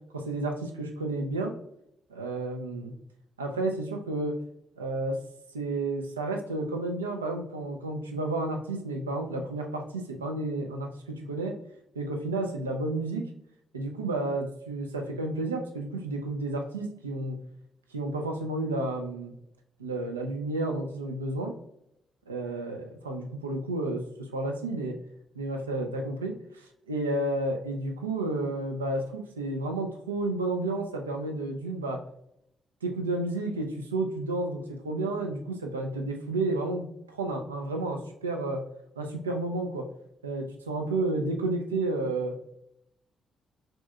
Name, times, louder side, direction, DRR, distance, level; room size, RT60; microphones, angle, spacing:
voice 1, 0.1-1.5 2.1-2.9 3.4-4.3 4.8-5.2 5.5-11.5 12.0-13.2 13.7-17.4 17.9-19.3 19.8-21.5 22.3-25.0 25.3-32.0 32.8-38.6 39.0-39.9 40.2-42.4, right 2 dB, 85° right, 3 dB, 0.4 m, -31 dB
4.2 x 3.2 x 2.2 m, 0.76 s
figure-of-eight pair, 40°, 0 cm